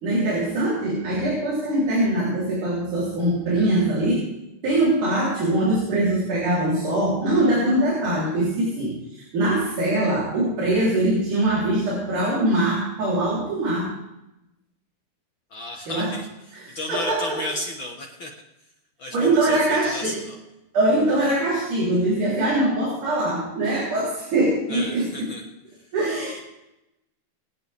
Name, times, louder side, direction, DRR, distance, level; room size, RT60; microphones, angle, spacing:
voice 1, 0.0-4.3 4.6-13.9 15.9-16.1 16.6-17.4 19.1-20.2 20.7-25.3 25.9-26.3, right 1 dB, 60° right, -7 dB, 4.9 m, -22 dB
voice 2, 15.5-18.3 19.0-20.4 24.7-25.4 25.8-25.9, left 1 dB, 60° left, 0 dB, 1.3 m, -33 dB
23.0 x 9.0 x 3.5 m, 0.90 s
omnidirectional pair, 4.1 m